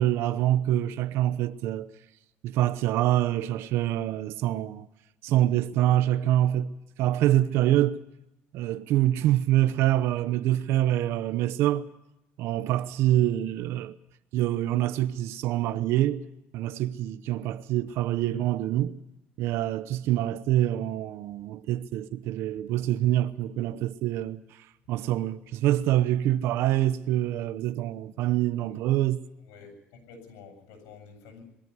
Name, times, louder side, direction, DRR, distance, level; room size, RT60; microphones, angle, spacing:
voice 1, 0.0-1.9 2.4-4.9 5.2-6.7 7.0-8.0 8.5-11.9 12.4-13.9 14.3-16.2 16.5-19.0 19.4-24.4 24.9-29.2, right 13 dB, 70° right, 0.9 m, -25 dB
voice 2, 29.4-31.4, left 5 dB, 90° left, 7.7 m, -49 dB
22.0 x 14.0 x 9.8 m
cardioid pair, 130°, 4 cm